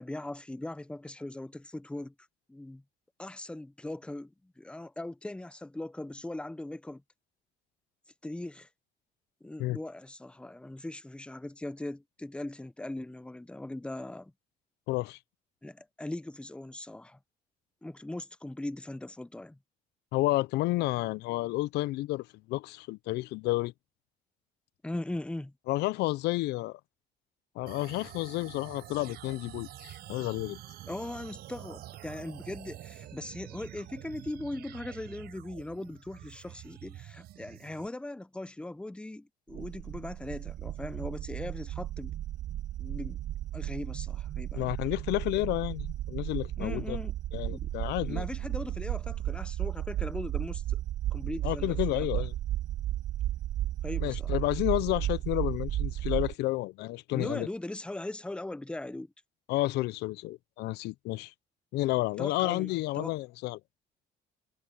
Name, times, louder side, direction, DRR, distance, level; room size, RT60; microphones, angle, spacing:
voice 1, 0.0-2.1 2.5-2.8 3.2-7.0 8.2-8.7 9.4-14.3 15.6-17.2 17.8-19.6 24.8-25.5 30.9-42.1 42.8-43.2 43.5-44.7 46.6-47.2 47.5-47.7 48.0-50.8 51.1-52.1 53.8-54.4 57.1-59.1 62.2-63.1, left 1 dB, 5° left, 0.8 m, -39 dB
voice 2, 14.9-15.2 20.1-23.7 25.7-26.8 27.6-30.6 44.5-47.0 47.3-48.2 51.4-52.3 54.0-57.5 59.5-61.3 61.7-63.6, left 18 dB, 80° left, 0.5 m, -31 dB
sound 1, 27.7-37.9, right 14 dB, 75° right, 4.2 m, -47 dB
sound 2, 39.5-56.3, right 13 dB, 50° right, 0.4 m, -34 dB
cardioid pair, 110°, 17 cm